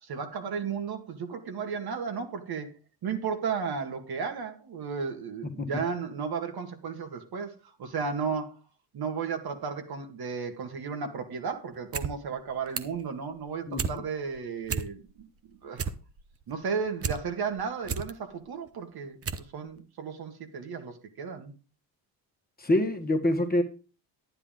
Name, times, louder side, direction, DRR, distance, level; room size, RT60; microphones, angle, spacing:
voice 1, 0.0-2.8 3.0-8.6 8.9-15.3 15.6-15.9 16.5-19.2 19.5-21.5, right 6 dB, 55° right, 2.0 m, -34 dB
sound 1, 11.7-12.1 12.4-13.0 13.4-14.0 14.3-14.4 14.6-15.2 15.5-17.2 17.6-18.1 18.7-18.8 19.2-19.5 19.8-19.9, right 6 dB, 30° right, 0.9 m, -32 dB
voice 2, 22.6-23.6, left 1 dB, 20° left, 1.6 m, -25 dB
10.0 x 9.8 x 3.8 m
cardioid pair, 90°, 45 cm